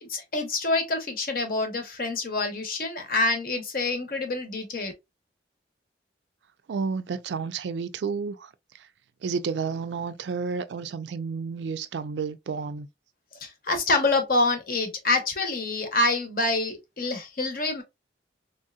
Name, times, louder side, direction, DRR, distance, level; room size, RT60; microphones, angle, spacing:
voice 1, 0.1-4.9 13.4-17.8, left 2 dB, 50° left, 0.9 m, -26 dB
voice 2, 6.7-8.5 8.8-8.9 9.2-12.9, right 5 dB, 80° right, 0.4 m, -31 dB
3.3 x 2.7 x 2.2 m
head